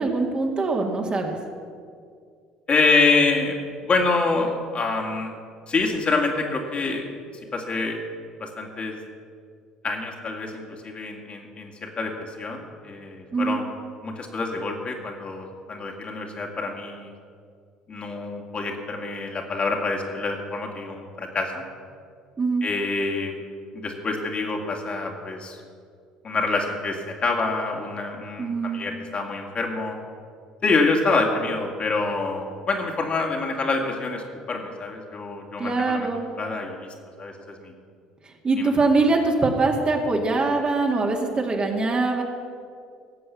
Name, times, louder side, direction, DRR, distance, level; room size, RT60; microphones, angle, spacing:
voice 1, 0.0-1.4 13.3-13.6 22.4-22.6 28.4-28.9 35.6-36.3 38.4-42.2, right 3 dB, 30° right, 1 dB, 2.1 m, -23 dB
voice 2, 2.7-3.6 3.8-5.3 5.7-7.0 7.5-8.0 8.4-9.0 9.8-13.6 14.0-17.1 17.9-21.6 22.6-23.4 23.7-25.6 26.2-30.0 30.6-36.1 36.4-36.9 37.2-37.7 38.6-38.7, left 3 dB, 35° left, 1 dB, 2.4 m, -26 dB
18.0 x 7.8 x 7.0 m, 2.2 s
figure-of-eight pair, 55°, 3 cm